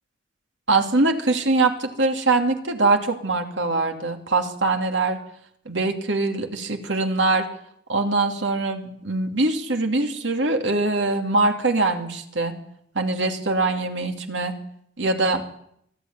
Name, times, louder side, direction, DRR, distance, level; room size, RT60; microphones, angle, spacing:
voice 1, 0.7-5.2 5.7-7.5 7.9-12.6 12.9-14.6 15.0-15.4, right 3 dB, 80° right, 5 dB, 2.6 m, -23 dB
24.0 x 13.5 x 9.4 m, 0.72 s
head